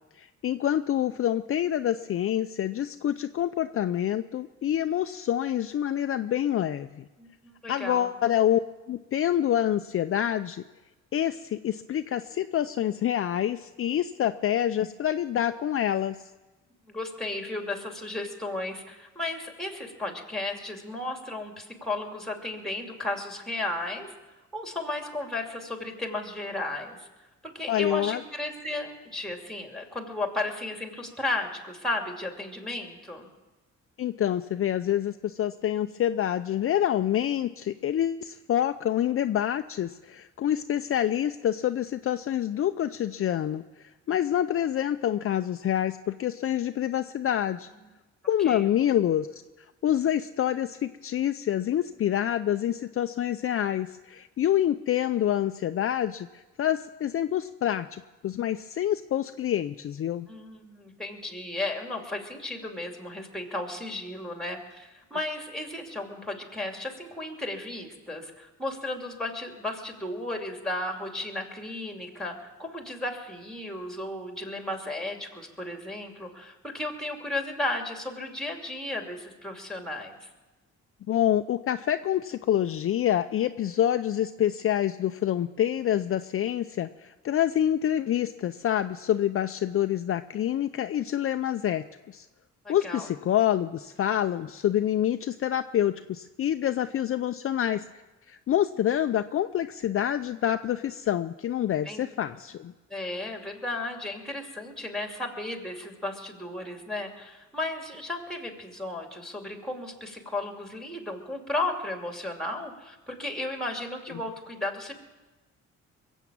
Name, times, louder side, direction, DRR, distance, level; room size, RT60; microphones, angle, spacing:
voice 1, 0.2-7.0 7.7-8.6 8.9-10.6 11.1-16.3 27.7-28.2 34.0-47.7 48.3-60.3 81.1-92.3 92.7-97.8 98.3-102.7, left 11 dB, 45° left, 9 dB, 0.5 m, -27 dB
voice 2, 7.2-8.1 16.9-24.1 24.5-27.1 27.4-33.3 48.4-48.7 60.3-80.3 92.6-93.1 101.8-102.0 102.9-114.9, left 2 dB, ahead, 4 dB, 2.6 m, -34 dB
22.0 x 8.1 x 7.4 m, 1.1 s
cardioid pair, 90°, 30 cm